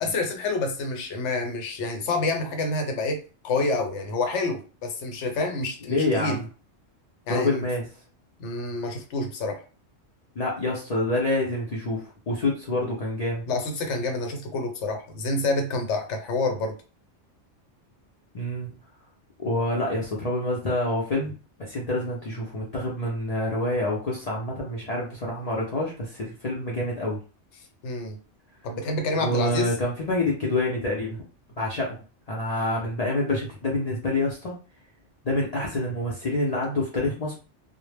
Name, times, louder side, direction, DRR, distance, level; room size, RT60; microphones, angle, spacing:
voice 1, 0.0-6.4 7.3-7.7 8.4-9.6 13.5-16.7 27.8-28.2 28.6-29.7, left 3 dB, 75° left, 4 dB, 0.9 m, -28 dB
voice 2, 5.9-6.4 7.3-7.9 10.4-13.4 18.3-18.7 19.4-27.2 29.2-31.2 31.6-32.0 32.3-34.6 35.2-37.3, left 1 dB, 50° left, -3 dB, 0.4 m, -27 dB
2.0 x 2.0 x 3.2 m, 0.35 s
omnidirectional pair, 1.2 m